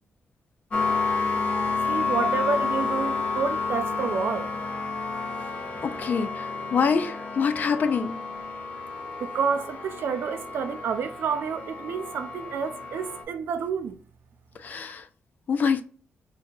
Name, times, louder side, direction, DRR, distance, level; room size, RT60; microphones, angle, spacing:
sound 1, 0.7-13.2, left 4 dB, 30° left, 1.0 m, -30 dB
voice 1, 1.8-4.5 9.2-14.0, right 6 dB, 65° right, 0.4 m, -29 dB
voice 2, 5.8-8.2 14.6-15.1 15.5-15.8, left 6 dB, 45° left, 0.4 m, -25 dB
5.3 x 2.7 x 2.3 m
wide cardioid pair, 170°, 4 cm